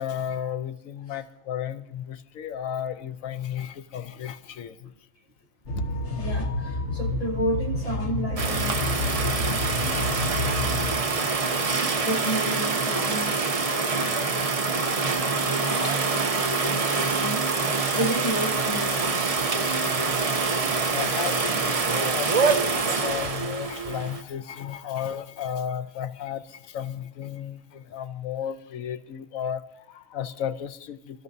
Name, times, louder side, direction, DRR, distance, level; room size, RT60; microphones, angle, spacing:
voice 1, 0.0-4.9 5.7-5.9 13.7-13.8 14.8-14.9 17.8-18.0 19.6-31.2, left 9 dB, 90° left, 1.1 m, -34 dB
sound 1, 5.7-11.0, left 2 dB, 60° left, 1.5 m, -29 dB
voice 2, 6.2-10.5 11.4-11.5 12.0-17.5 17.9-19.3, equal, 30° left, 1.3 m, -33 dB
sound 2, 8.4-24.2, right 4 dB, 35° right, 0.7 m, -25 dB
26.5 x 13.5 x 2.7 m
omnidirectional pair, 1.4 m